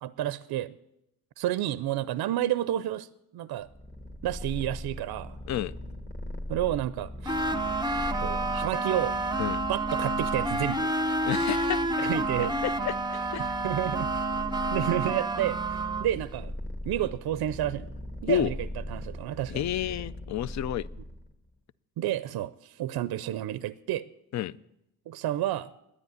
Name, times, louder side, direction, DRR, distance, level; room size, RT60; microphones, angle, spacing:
voice 1, 0.0-0.7 1.4-3.1 3.3-3.7 4.2-5.4 6.5-7.4 8.2-9.2 9.7-10.9 12.0-12.6 13.4-14.2 14.6-16.5 16.9-17.9 18.2-18.5 18.9-19.6 22.0-24.0 25.1-25.7, right 13 dB, 65° right, 16 dB, 0.5 m, -30 dB
Purr, 3.6-21.3, left 1 dB, 25° left, 1.7 m, -40 dB
sound 1, 7.2-16.1, right 2 dB, 10° right, 0.7 m, -29 dB
voice 2, 11.2-11.8 12.6-13.5 18.3-18.5 19.5-20.9 24.3-24.5, left 11 dB, 45° left, 20 dB, 0.5 m, -30 dB
9.9 x 9.8 x 9.4 m, 0.86 s
cardioid pair, 85°, 40 cm